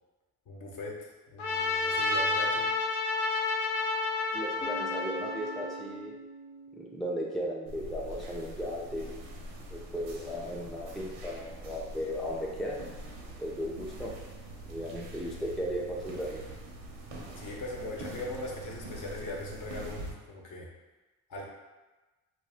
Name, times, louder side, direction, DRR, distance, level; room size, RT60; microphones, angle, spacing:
voice 1, 0.5-2.7 17.4-20.7 21.3-21.5, left 2 dB, 55° left, -1 dB, 0.8 m, -40 dB
Trumpet, 1.4-5.8, left 3 dB, 85° left, 0.5 m, -30 dB
voice 2, 4.3-6.1 6.7-9.1 9.7-12.8 13.4-14.1 14.7-16.4, equal, ahead, -2 dB, 0.3 m, -36 dB
Bass guitar, 4.6-8.4, right 2 dB, 25° left, 0.8 m, -46 dB
sound 1, 7.7-20.1, right 1 dB, 80° right, 0.7 m, -44 dB
2.4 x 2.3 x 3.4 m, 1.2 s
supercardioid pair, 65°, 38 cm